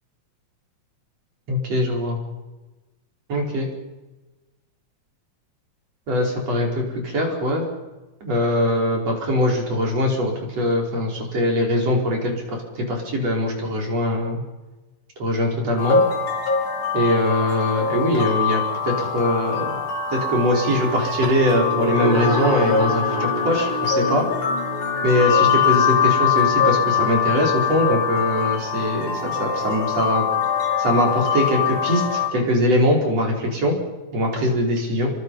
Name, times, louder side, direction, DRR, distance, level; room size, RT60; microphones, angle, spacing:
voice 1, 1.5-2.2 3.3-3.7 6.1-7.6 8.2-14.4 15.2-16.0 16.9-19.8 20.1-24.2 25.0-30.3 30.8-33.8 34.1-35.1, equal, 55° right, 1 dB, 5.9 m, -22 dB
sound 1, 15.8-32.3, left 7 dB, 85° left, 4.6 m, -23 dB
sound 2, 21.2-30.1, left 1 dB, 45° left, 4.3 m, -30 dB
29.0 x 24.0 x 5.7 m, 1.1 s
omnidirectional pair, 3.4 m